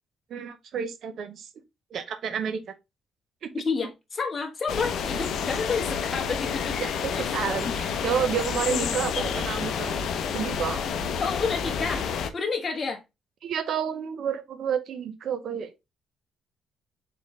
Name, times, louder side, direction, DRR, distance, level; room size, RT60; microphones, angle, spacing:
voice 1, 0.3-1.5 1.9-2.6 3.4-3.5 6.8-10.0 10.3-10.8 13.4-15.7, right 8 dB, 65° right, 0.7 m, -30 dB
voice 2, 3.5-6.8 7.1-7.3 7.6-7.7 8.7-9.4 11.2-12.1 12.3-13.0, left 5 dB, 35° left, 1.1 m, -30 dB
Forest wind and birds, 4.7-12.3, left 7 dB, 75° left, 0.6 m, -29 dB
4.2 x 3.7 x 3.1 m
cardioid pair, 90°, 0 cm